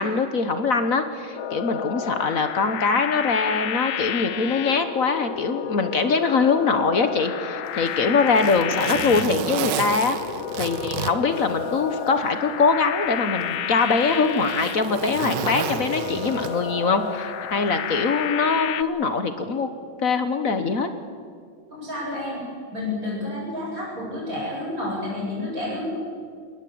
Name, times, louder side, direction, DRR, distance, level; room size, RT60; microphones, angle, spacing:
voice 1, 0.0-10.2 10.6-19.7 20.0-20.9, left 4 dB, 50° left, 9 dB, 1.4 m, -23 dB
sound 1, 1.4-18.8, left 10 dB, 80° left, 1.6 m, -31 dB
Zipper (clothing), 7.7-12.1 12.5-12.6 13.4-16.9 18.0-18.2, right 10 dB, 70° right, 1.4 m, -32 dB
voice 2, 21.7-22.4 22.7-25.9, left 1 dB, 45° right, -4 dB, 8.6 m, -30 dB
20.5 x 19.5 x 8.7 m, 2.1 s
omnidirectional pair, 2.2 m